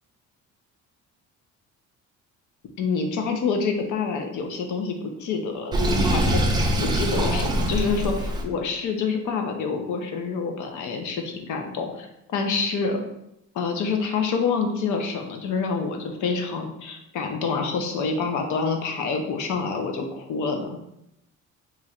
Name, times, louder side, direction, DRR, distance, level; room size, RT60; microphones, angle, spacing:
voice 1, 2.8-13.0 13.5-20.8, left 5 dB, 75° left, 4 dB, 0.7 m, -27 dB
Sink (filling or washing), 5.7-8.4, right 1 dB, 15° right, 0.3 m, -23 dB
3.0 x 2.5 x 4.3 m, 0.82 s
cardioid pair, 165°, 30 cm